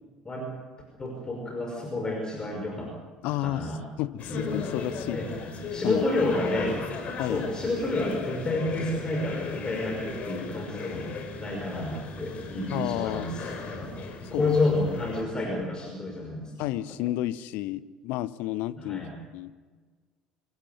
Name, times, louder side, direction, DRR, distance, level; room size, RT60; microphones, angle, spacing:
voice 1, 1.0-2.9 3.3-3.8 4.3-4.5 5.1-5.3 5.7-6.8 7.2-11.1 11.4-13.4 13.7-13.9 14.3-16.7 18.8-19.2, left 2 dB, 20° left, 1 dB, 5.8 m, -30 dB
voice 2, 3.2-3.7 4.0-5.2 5.8-6.0 7.2-7.5 12.7-13.4 14.3-14.6 16.6-19.0 19.3-19.5, left 15 dB, 60° left, 16 dB, 0.9 m, -31 dB
sound 1, 4.2-15.2, left 4 dB, 40° left, 4.6 m, -37 dB
26.0 x 15.0 x 9.4 m, 1.5 s
figure-of-eight pair, 65°, 3 cm